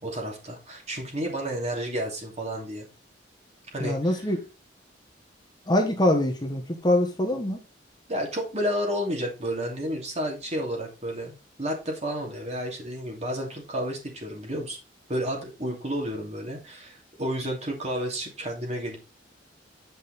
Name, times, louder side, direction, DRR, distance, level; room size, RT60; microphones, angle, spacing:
voice 1, 0.0-2.9 3.7-4.3 8.1-14.8 15.1-19.0, equal, 40° right, 0 dB, 2.7 m, -31 dB
voice 2, 3.8-4.4 5.7-7.6, left 1 dB, 25° left, 2 dB, 1.3 m, -24 dB
8.8 x 5.5 x 4.2 m, 0.29 s
head